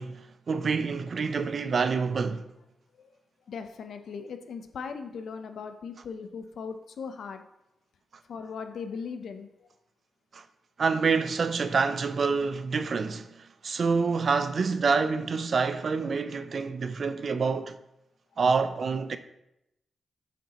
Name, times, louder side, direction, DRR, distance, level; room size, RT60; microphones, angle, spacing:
voice 1, 0.0-2.4 10.3-10.4 10.8-13.3 13.6-17.7 18.4-19.2, right 5 dB, 50° right, 0.5 m, -27 dB
voice 2, 3.5-7.4 8.3-9.5, left 5 dB, 75° left, 0.7 m, -38 dB
8.1 x 6.3 x 2.9 m
wide cardioid pair, 115°, 0 cm